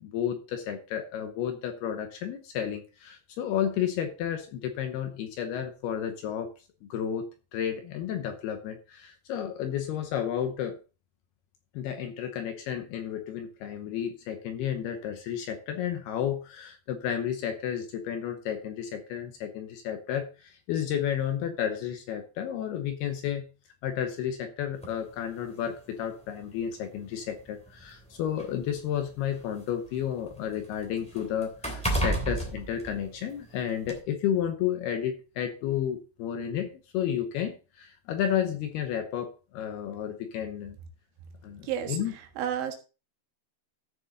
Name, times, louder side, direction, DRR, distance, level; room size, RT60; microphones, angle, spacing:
voice 1, 0.0-6.5 6.8-7.3 7.5-10.8 11.7-23.4 23.8-40.8 41.4-42.1, left 9 dB, 75° left, 7 dB, 2.5 m, -32 dB
sound 1, 24.8-25.0 26.0-26.1 26.6-26.7 27.7-29.6 30.0-33.5 33.8-34.0, right 1 dB, ahead, 1.5 m, -33 dB
voice 2, 41.6-42.8, right 9 dB, 80° right, 4 dB, 4.0 m, -32 dB
14.0 x 6.8 x 3.9 m, 0.32 s
omnidirectional pair, 5.4 m